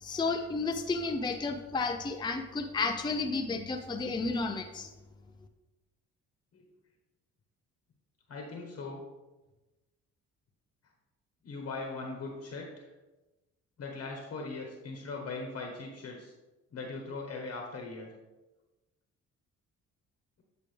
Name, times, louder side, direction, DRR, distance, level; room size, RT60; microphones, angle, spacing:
voice 1, 0.0-4.9, left 3 dB, 15° left, 5 dB, 0.6 m, -32 dB
voice 2, 8.3-9.0 11.4-12.9 13.8-16.3 16.7-18.1, left 3 dB, 50° left, 1 dB, 1.2 m, -40 dB
8.9 x 4.9 x 3.3 m, 1.1 s
cardioid pair, 90°, 30 cm